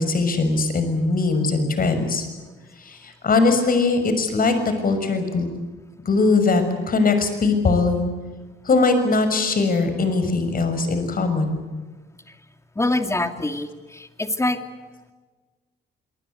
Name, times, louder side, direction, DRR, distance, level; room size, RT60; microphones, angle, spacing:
voice 1, 0.0-2.2 2.8-5.5 6.0-8.0 8.6-11.6, left 3 dB, 45° left, 8 dB, 6.4 m, -21 dB
voice 2, 12.8-14.6, left 2 dB, 15° left, 8 dB, 2.6 m, -24 dB
26.5 x 20.5 x 8.0 m, 1.4 s
cardioid pair, 90°, 20 cm